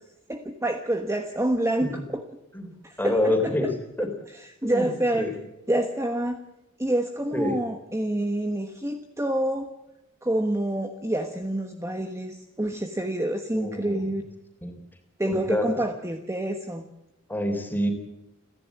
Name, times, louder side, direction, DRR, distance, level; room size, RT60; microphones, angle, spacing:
voice 1, 0.3-2.2 2.8-3.7 4.3-5.3 5.7-6.4 6.8-9.7 10.2-14.2 15.2-16.9, right 1 dB, 15° right, 5 dB, 1.2 m, -27 dB
voice 2, 3.0-3.7 4.0-4.1 4.6-5.3 7.3-7.6 13.5-14.1 14.6-14.7 15.3-15.7 17.3-17.9, left 1 dB, 10° left, 5 dB, 3.5 m, -27 dB
30.0 x 11.0 x 8.3 m, 0.89 s
head